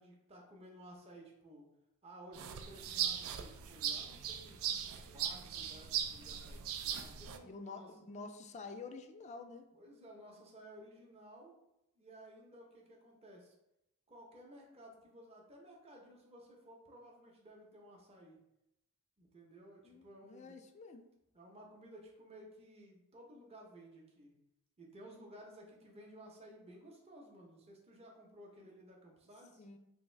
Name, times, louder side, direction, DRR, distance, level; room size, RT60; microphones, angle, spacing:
voice 1, 0.0-1.7 2.0-4.6 5.0-7.9 9.7-11.6 12.0-13.6 14.1-18.4 19.2-20.6 21.3-24.3 24.8-29.6, right 1 dB, 30° right, -1 dB, 0.7 m, -56 dB
sound 1, 2.3-7.4, right 9 dB, 65° right, 0.3 m, -39 dB
voice 2, 7.4-9.7 19.8-21.1 29.6-29.8, left 4 dB, 30° left, 7 dB, 0.3 m, -49 dB
3.5 x 2.6 x 3.1 m, 0.85 s
head